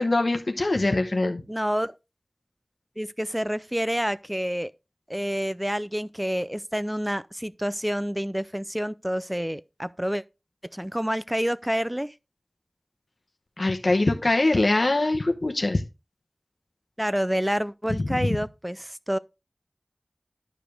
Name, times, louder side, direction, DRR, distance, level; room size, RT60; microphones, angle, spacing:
voice 1, 0.0-1.4 13.6-15.8 18.1-18.4, left 2 dB, 75° left, 0.9 m, -23 dB
voice 2, 1.5-1.9 3.0-4.7 5.1-10.2 10.7-12.1 17.0-19.2, equal, 10° right, 0.5 m, -28 dB
11.0 x 5.0 x 3.3 m
wide cardioid pair, 45°, 0 cm